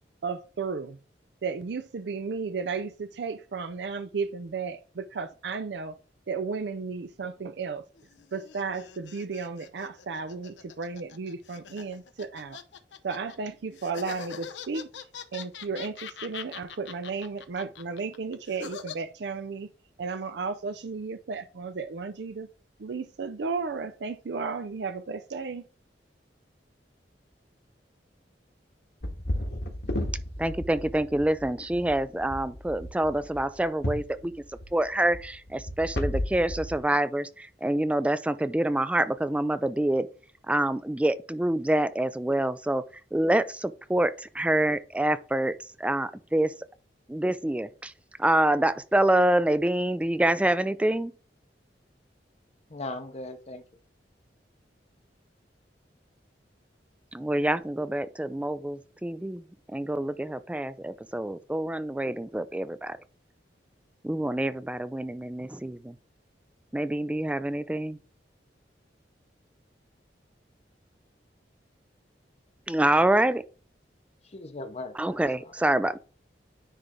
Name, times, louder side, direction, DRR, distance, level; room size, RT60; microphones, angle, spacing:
voice 1, 0.2-1.0 1.4-6.0 6.3-7.8 8.3-12.6 13.0-14.9 15.3-19.7 20.0-22.5 22.8-25.7, right 4 dB, 70° right, 0.5 m, -34 dB
sound 1, 8.0-13.4 13.8-19.0, left 7 dB, 85° left, 0.7 m, -43 dB
sound 2, 29.0-36.8, left 1 dB, 65° left, 1.6 m, -34 dB
voice 2, 30.4-34.3 34.7-40.1 40.5-42.8 43.1-45.5 45.8-46.5 47.1-47.9 48.2-51.1 57.1-59.4 59.7-63.0 64.0-66.0 66.7-68.0 72.7-73.4 75.0-76.0, right 1 dB, 5° right, 0.3 m, -26 dB
voice 3, 52.7-53.6 74.2-75.6, left 2 dB, 35° left, 0.7 m, -39 dB
9.9 x 3.3 x 3.6 m
head